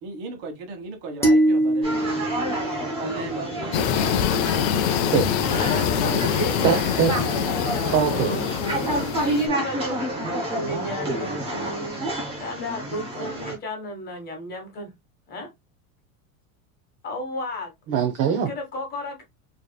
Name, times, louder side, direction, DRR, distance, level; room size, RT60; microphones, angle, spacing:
voice 1, 0.0-1.9 3.0-3.8, right 3 dB, 55° right, 1.7 m, -35 dB
sound 1, 1.2-3.6, right 1 dB, 5° left, 0.8 m, -23 dB
sound 2, 1.8-13.5, right 1 dB, 10° right, 2.0 m, -29 dB
sound 3, 3.7-9.5, left 8 dB, 40° left, 0.5 m, -24 dB
voice 2, 5.6-6.8 7.3-8.0 9.1-10.0 10.5-12.1 12.3-14.9 15.3-15.5 17.0-17.7 18.5-19.2, left 1 dB, 20° left, 1.2 m, -33 dB
voice 3, 6.6-7.1 7.9-8.6 17.9-18.5, right 7 dB, 30° right, 0.7 m, -22 dB
4.9 x 3.0 x 2.2 m
supercardioid pair, 165°, 43 cm